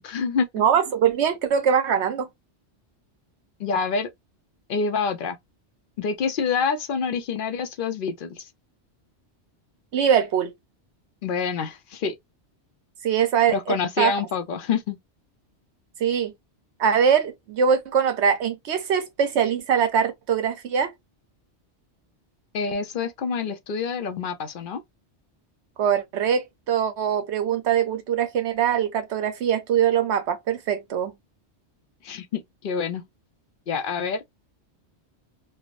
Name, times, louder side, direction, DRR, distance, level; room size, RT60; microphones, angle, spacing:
voice 1, 0.0-0.5 3.6-4.1 4.7-5.4 6.0-8.5 11.2-12.1 13.5-15.0 22.5-24.8 32.0-33.1 33.7-34.2, left 5 dB, 60° left, 0.6 m, -27 dB
voice 2, 0.5-2.3 9.9-10.5 13.0-14.1 16.0-16.3 16.8-20.9 25.8-31.1, right 7 dB, 75° right, 1.0 m, -22 dB
3.3 x 2.0 x 2.5 m
omnidirectional pair, 1.2 m